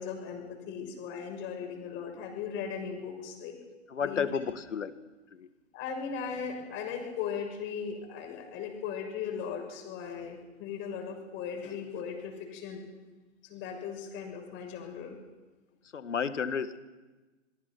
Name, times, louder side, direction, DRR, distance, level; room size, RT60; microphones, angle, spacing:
voice 1, 0.0-3.6 4.0-4.3 5.7-12.9 13.5-15.2, left 7 dB, 30° left, 3 dB, 6.7 m, -38 dB
voice 2, 3.9-4.9 5.3-5.5 15.9-16.8, left 6 dB, 70° left, 12 dB, 1.8 m, -32 dB
25.5 x 21.5 x 6.1 m, 1.2 s
figure-of-eight pair, 115°, 38 cm